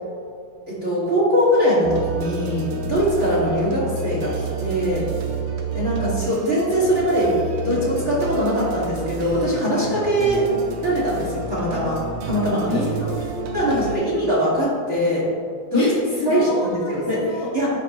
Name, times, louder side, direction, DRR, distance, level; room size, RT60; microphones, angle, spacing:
voice 1, 0.7-5.0 5.7-7.3 7.6-12.0 12.2-13.1 13.5-15.2 15.7-15.8 16.2-17.2 17.5-17.7, equal, 50° right, -7 dB, 0.8 m, -22 dB
sound 1, 1.8-14.0, right 3 dB, 80° right, 2.1 m, -30 dB
voice 2, 12.7-14.1 15.7-17.5, left 3 dB, 85° left, -4 dB, 1.3 m, -28 dB
12.0 x 4.7 x 2.6 m, 2.3 s
omnidirectional pair, 3.7 m